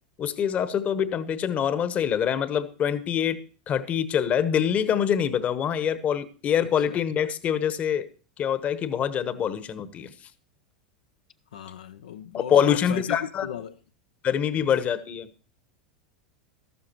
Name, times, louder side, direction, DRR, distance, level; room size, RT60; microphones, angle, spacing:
voice 1, 0.2-8.1 8.4-10.1 12.3-13.5 14.2-15.3, left 8 dB, 35° left, 1.1 m, -25 dB
voice 2, 11.5-13.8 14.6-14.7, left 8 dB, 75° left, 0.6 m, -36 dB
13.5 x 12.5 x 3.0 m
hypercardioid pair, 90°, 4 cm